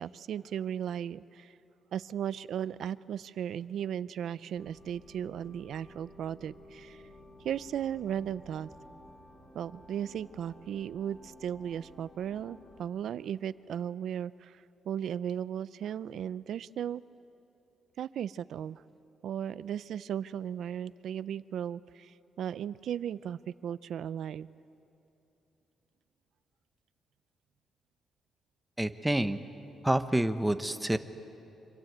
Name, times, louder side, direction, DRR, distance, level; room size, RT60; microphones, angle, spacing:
voice 1, 0.0-1.5 1.9-7.0 7.4-8.7 9.5-17.0 18.0-18.8 19.2-24.5, right 9 dB, 70° right, 17 dB, 0.5 m, -36 dB
sound 1, 4.6-12.8, left 1 dB, 30° left, 5.2 m, -54 dB
voice 2, 28.8-29.4 29.8-31.0, right 1 dB, 5° right, 9 dB, 1.0 m, -28 dB
26.0 x 25.5 x 8.1 m, 3.0 s
cardioid pair, 120°, 0 cm